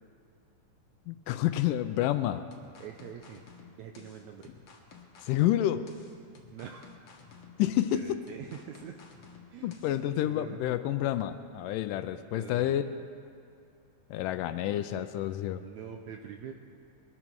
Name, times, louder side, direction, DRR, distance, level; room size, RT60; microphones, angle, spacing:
voice 1, 1.1-2.5 5.2-5.9 7.6-8.1 9.6-12.9 14.1-15.6, left 13 dB, 80° left, 11 dB, 2.1 m, -29 dB
sound 1, 2.5-10.0, left 6 dB, 50° left, 1.8 m, -53 dB
voice 2, 2.8-3.4 3.8-4.5 6.5-6.9 7.9-9.0 9.5-9.8 10.0-10.8 12.3-12.8 15.6-16.5, right 8 dB, 75° right, 4 dB, 1.7 m, -44 dB
22.0 x 12.5 x 4.6 m, 2.5 s
omnidirectional pair, 4.0 m